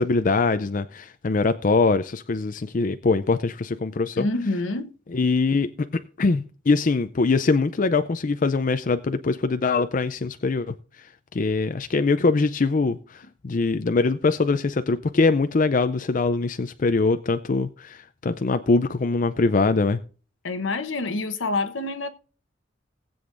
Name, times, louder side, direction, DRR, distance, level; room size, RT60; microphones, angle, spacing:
voice 1, 0.0-4.3 5.1-5.7 6.2-11.1 11.3-20.0, left 3 dB, 40° left, 0.5 m, -23 dB
voice 2, 4.2-4.9 20.4-22.1, left 2 dB, 75° left, 1.0 m, -27 dB
19.0 x 7.9 x 2.5 m
head